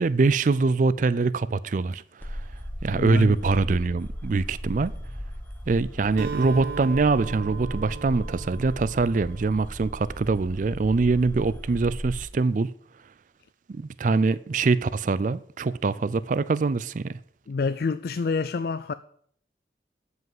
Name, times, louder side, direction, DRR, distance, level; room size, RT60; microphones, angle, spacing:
voice 1, 0.0-2.4 2.8-4.9 5.7-12.7 13.7-17.1, right 3 dB, 45° right, 0.4 m, -24 dB
sound 1, 2.2-12.3, equal, 10° left, 1.2 m, -37 dB
voice 2, 2.9-3.4 17.5-18.9, left 4 dB, 55° left, 0.4 m, -27 dB
Acoustic guitar, 6.2-10.0, right 5 dB, 75° right, 1.8 m, -37 dB
12.5 x 5.5 x 7.8 m
head